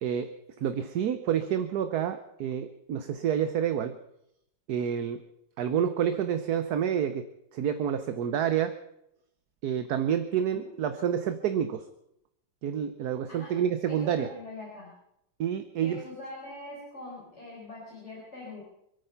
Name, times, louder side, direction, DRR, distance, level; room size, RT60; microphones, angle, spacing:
voice 1, 0.0-4.0 4.7-5.2 5.6-7.3 7.5-8.8 9.6-11.9 12.6-14.3 15.4-16.0, right 9 dB, 60° right, 10 dB, 1.2 m, -28 dB
voice 2, 13.9-14.9 15.8-18.6, left 2 dB, 35° left, -5 dB, 4.9 m, -43 dB
26.5 x 9.1 x 5.7 m, 0.78 s
omnidirectional pair, 2.1 m